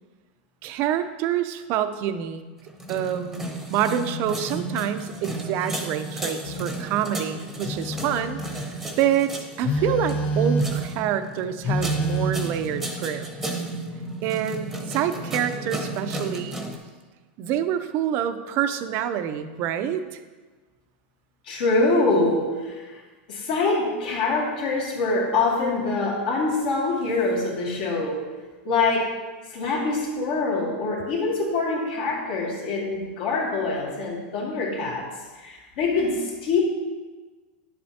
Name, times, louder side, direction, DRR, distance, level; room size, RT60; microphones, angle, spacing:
voice 1, 0.6-2.4 2.9-8.4 9.0-9.3 9.6-13.3 14.2-16.7 17.4-20.2, right 9 dB, 40° right, 10 dB, 0.5 m, -27 dB
sound 1, 2.6-16.8, right 1 dB, 5° right, 0.9 m, -34 dB
Telephone, 6.4-6.7 7.6-8.7 9.6-10.9 11.6-12.3, right 1 dB, 25° left, 0.7 m, -26 dB
voice 2, 21.4-23.0 23.3-28.3 28.6-29.2 29.5-35.1 35.4-36.6, left 3 dB, 65° left, -3 dB, 2.3 m, -24 dB
10.5 x 7.6 x 2.8 m, 1.3 s
supercardioid pair, 145°, 6 cm